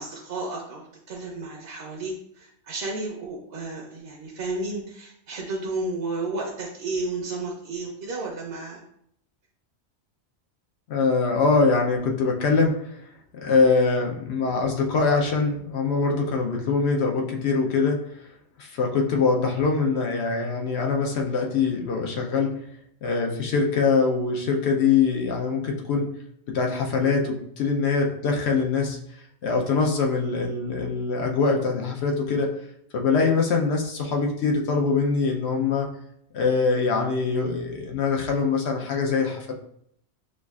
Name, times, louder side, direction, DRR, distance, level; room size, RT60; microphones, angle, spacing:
voice 1, 0.0-8.8, right 2 dB, 60° right, -2 dB, 0.8 m, -32 dB
voice 2, 10.9-13.0 13.3-18.0 18.6-22.6 23.0-26.1 26.5-29.0 29.4-32.5 32.9-35.9 36.3-39.5, left 4 dB, 70° left, 1 dB, 0.9 m, -23 dB
6.1 x 2.4 x 2.3 m, 0.70 s
omnidirectional pair, 1.2 m